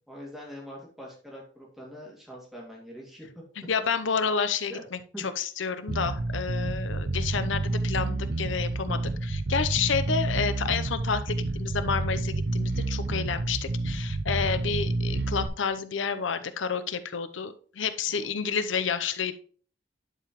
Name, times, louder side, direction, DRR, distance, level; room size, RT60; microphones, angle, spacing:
voice 1, 0.1-3.4 4.7-4.8 5.1-5.2 18.1-18.4, equal, ahead, -3 dB, 2.3 m, -43 dB
voice 2, 3.7-19.3, left 6 dB, 90° left, 11 dB, 0.7 m, -30 dB
Bass guitar, 5.9-15.5, right 2 dB, 55° right, 0.7 m, -29 dB
11.0 x 4.9 x 3.0 m, 0.43 s
head